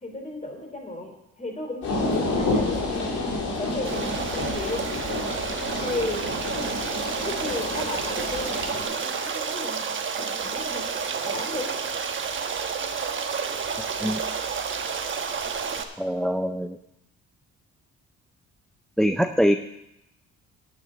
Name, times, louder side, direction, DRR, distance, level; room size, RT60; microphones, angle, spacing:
voice 1, 0.0-3.1 3.6-4.8 5.8-6.7 7.2-9.8 10.2-11.7, left 2 dB, 25° left, 2 dB, 3.2 m, -35 dB
sound 1, 1.8-8.8, left 2 dB, 85° left, 3.9 m, -29 dB
Stream, 3.9-15.8, right 6 dB, 40° right, 1.1 m, -30 dB
voice 2, 13.8-14.2 16.0-16.8 19.0-19.6, equal, ahead, 8 dB, 0.4 m, -23 dB
9.4 x 6.5 x 8.6 m, 0.87 s
cardioid pair, 90°, 30 cm